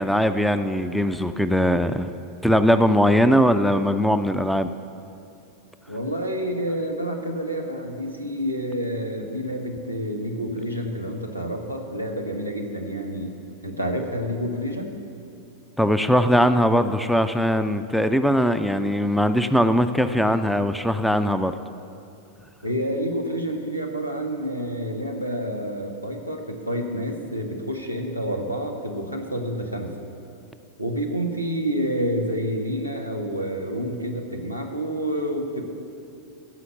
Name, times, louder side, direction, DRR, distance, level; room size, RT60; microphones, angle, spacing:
voice 1, 0.0-2.1 2.4-4.7 15.8-21.5, equal, ahead, 11 dB, 0.4 m, -20 dB
voice 2, 5.9-13.4 13.6-14.9 22.6-29.9 30.8-35.6, equal, 90° left, 3 dB, 1.2 m, -28 dB
15.5 x 5.7 x 7.0 m, 2.6 s
figure-of-eight pair, 90°, 0 cm